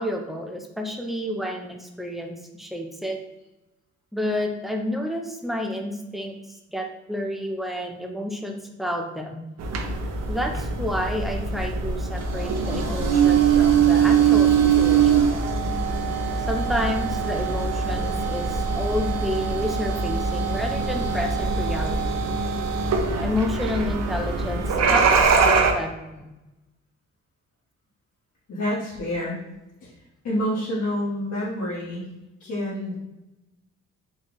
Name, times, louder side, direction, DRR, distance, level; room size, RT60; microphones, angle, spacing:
voice 1, 0.0-3.2 4.1-9.5 10.3-15.3 16.5-22.0 23.2-26.3, left 1 dB, ahead, 2 dB, 0.6 m, -30 dB
sound 1, 9.6-25.7, right 6 dB, 60° right, 0.7 m, -22 dB
voice 2, 28.5-29.4 29.8-29.9 30.2-32.0 32.4-32.9, left 1 dB, 60° left, -8 dB, 1.4 m, -28 dB
4.0 x 2.3 x 3.8 m, 0.99 s
cardioid pair, 90°, 30 cm